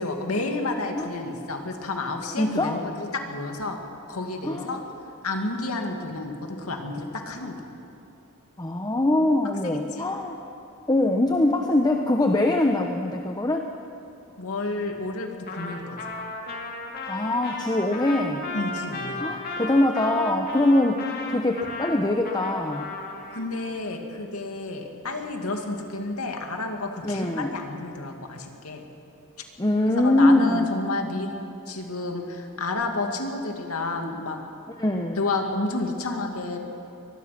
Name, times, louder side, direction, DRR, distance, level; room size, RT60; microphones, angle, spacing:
voice 1, 0.0-3.8 4.1-4.8 5.2-7.7 9.6-10.0 14.4-16.2 18.5-19.2 23.3-28.9 30.0-31.3 31.7-34.4 35.2-36.6, left 2 dB, 80° left, 3 dB, 2.4 m, -30 dB
voice 2, 2.4-2.8 4.4-4.8 8.6-10.4 10.9-13.7 17.1-18.5 19.2-22.9 27.0-27.6 29.6-30.6 34.8-35.2, left 1 dB, 20° left, 3 dB, 0.9 m, -23 dB
Trumpet, 15.5-23.5, left 2 dB, 45° left, 2.6 m, -35 dB
23.5 x 20.0 x 6.0 m, 2.8 s
head